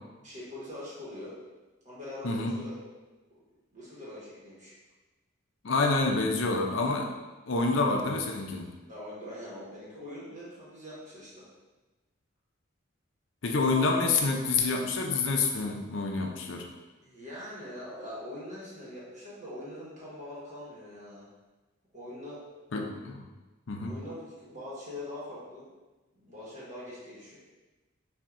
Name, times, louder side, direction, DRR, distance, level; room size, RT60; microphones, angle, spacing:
voice 1, 0.2-1.3 1.8-2.9 3.3-3.4 3.7-4.7 8.9-11.5 17.0-21.3 21.9-22.4 23.8-25.7 26.1-27.4, left 1 dB, 35° right, -8 dB, 1.4 m, -43 dB
voice 2, 5.6-7.1 7.5-8.7 13.4-16.7 22.7-23.2 23.7-23.9, left 3 dB, 65° left, 2 dB, 0.6 m, -27 dB
5.7 x 2.7 x 2.6 m, 1.2 s
head